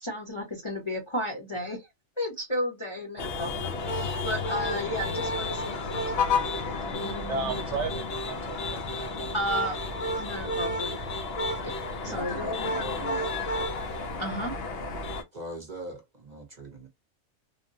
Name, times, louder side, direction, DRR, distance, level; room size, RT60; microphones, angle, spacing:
voice 1, 0.0-1.9 2.2-7.5 9.3-9.8 10.2-11.0 11.6-11.7 12.0-12.7 14.2-14.6, equal, 25° left, 0.8 m, -33 dB
sound 1, 3.2-15.2, left 3 dB, 55° left, 0.8 m, -31 dB
voice 2, 7.3-9.3, right 4 dB, 65° right, 1.0 m, -34 dB
voice 3, 12.0-13.3 15.3-16.9, right 1 dB, 40° right, 0.8 m, -40 dB
3.4 x 2.1 x 2.6 m
omnidirectional pair, 1.4 m